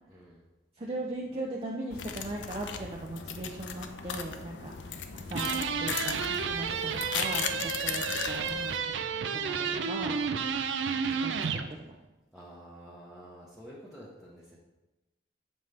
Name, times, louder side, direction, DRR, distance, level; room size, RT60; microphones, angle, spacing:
voice 1, 0.1-0.5 4.7-5.0 11.7-11.8 12.3-14.6, equal, ahead, -6 dB, 0.8 m, -50 dB
voice 2, 0.8-8.9 9.3-10.2 10.6-10.7 11.2-11.4 11.8-11.9, right 1 dB, 30° right, -1 dB, 0.5 m, -39 dB
sound 1, 1.9-8.8, left 7 dB, 85° left, 0.5 m, -37 dB
sound 2, 5.3-11.7, right 6 dB, 85° right, 0.5 m, -31 dB
7.6 x 5.4 x 3.3 m, 1.1 s
head